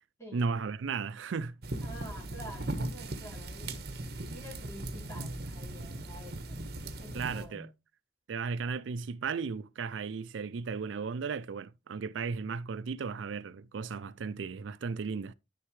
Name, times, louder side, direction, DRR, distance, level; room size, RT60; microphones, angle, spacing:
voice 1, 0.3-1.6 7.1-7.7 8.3-15.3, right 5 dB, 85° right, 0.4 m, -35 dB
sound 1, 1.6-7.4, right 1 dB, 55° right, 1.1 m, -38 dB
voice 2, 1.8-6.7 7.0-7.7, equal, 15° left, 2.9 m, -48 dB
10.0 x 6.6 x 3.1 m
head